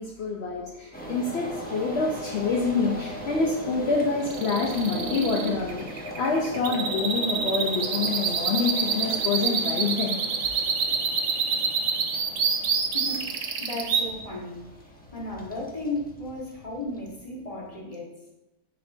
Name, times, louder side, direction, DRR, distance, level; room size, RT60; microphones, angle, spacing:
voice 1, 0.0-10.2, left 4 dB, 55° left, -1 dB, 0.8 m, -27 dB
sound 1, 0.9-17.7, right 1 dB, 10° left, 0.7 m, -39 dB
sound 2, 4.3-14.0, right 6 dB, 70° right, 1.2 m, -27 dB
voice 2, 12.9-14.7 15.1-18.2, left 2 dB, 25° left, -4 dB, 1.5 m, -35 dB
9.3 x 4.4 x 2.7 m, 0.94 s
omnidirectional pair, 1.7 m